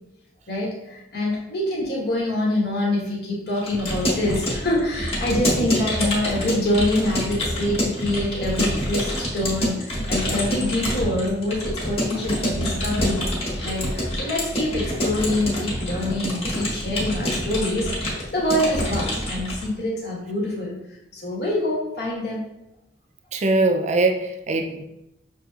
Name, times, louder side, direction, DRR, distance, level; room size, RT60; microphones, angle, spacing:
voice 1, 0.5-13.2 13.6-20.8 21.1-22.5, left 1 dB, 65° left, -3 dB, 1.3 m, -25 dB
Keyboard (musical) / Computer keyboard, 3.6-19.7, equal, 35° left, 1.3 m, -26 dB
voice 2, 23.3-24.9, right 2 dB, 40° right, 5 dB, 0.4 m, -21 dB
6.1 x 2.9 x 2.4 m, 0.86 s
head